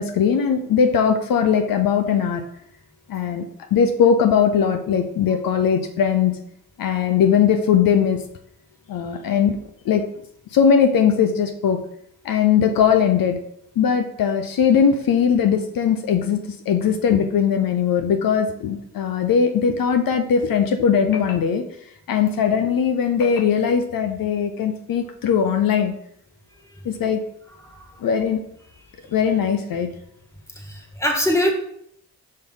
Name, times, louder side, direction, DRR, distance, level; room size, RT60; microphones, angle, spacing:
voice 1, 0.0-2.4 3.1-3.5 3.7-6.4 6.8-8.2 8.9-9.6 9.8-10.0 10.5-11.8 12.2-13.4 13.8-16.4 16.7-21.6 22.1-25.9 26.8-27.2 28.0-28.4 29.1-29.9, left 7 dB, 75° left, 6 dB, 0.7 m, -19 dB
voice 2, 30.5-31.5, equal, 10° left, 1 dB, 1.8 m, -23 dB
5.5 x 5.4 x 3.9 m, 0.71 s
supercardioid pair, 50°, 35 cm